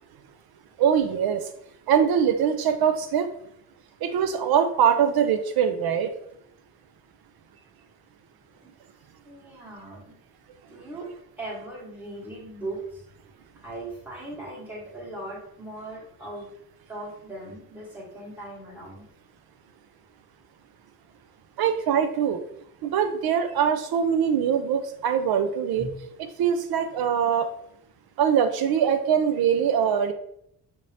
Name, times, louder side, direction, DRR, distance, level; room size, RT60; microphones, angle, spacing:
voice 1, 0.8-1.5 1.9-3.3 4.0-6.1 21.6-22.4 22.8-25.9 26.4-27.5 28.2-30.1, right 8 dB, 70° right, 9 dB, 0.5 m, -22 dB
voice 2, 9.2-10.2 10.7-11.1 11.4-13.1 13.5-16.5 16.9-19.1 25.7-26.1, right 2 dB, 5° right, -5 dB, 1.1 m, -39 dB
5.8 x 2.7 x 3.2 m, 0.74 s
wide cardioid pair, 170°, 38 cm